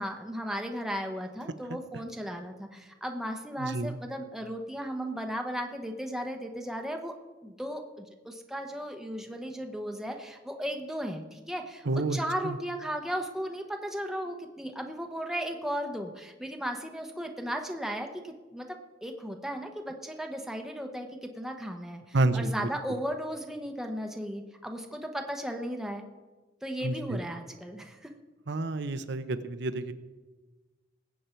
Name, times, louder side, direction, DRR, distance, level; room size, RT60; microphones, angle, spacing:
voice 1, 0.0-7.1 7.4-11.9 12.1-18.7 19.0-26.1 26.6-28.1, equal, 5° right, 3 dB, 1.0 m, -36 dB
voice 2, 3.6-4.0 11.9-12.2 12.4-12.6 22.1-23.0 26.8-27.2 28.5-29.9, right 2 dB, 65° right, 12 dB, 0.8 m, -29 dB
20.0 x 8.3 x 4.5 m, 1.2 s
head